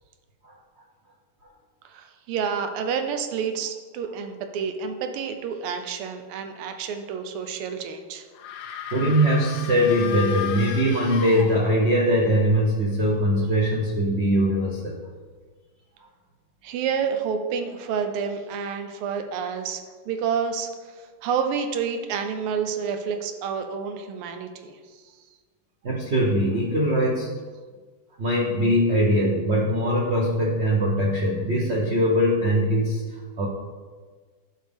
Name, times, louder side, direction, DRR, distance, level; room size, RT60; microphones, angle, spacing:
voice 1, 1.9-8.2 16.6-24.8, right 6 dB, 85° right, 6 dB, 1.6 m, -29 dB
sound 1, 8.3-12.0, left 9 dB, 80° left, 0.9 m, -35 dB
voice 2, 8.6-15.0 25.8-27.4 28.2-33.5, equal, 60° right, -3 dB, 0.6 m, -22 dB
11.0 x 4.5 x 3.5 m, 1.5 s
omnidirectional pair, 2.4 m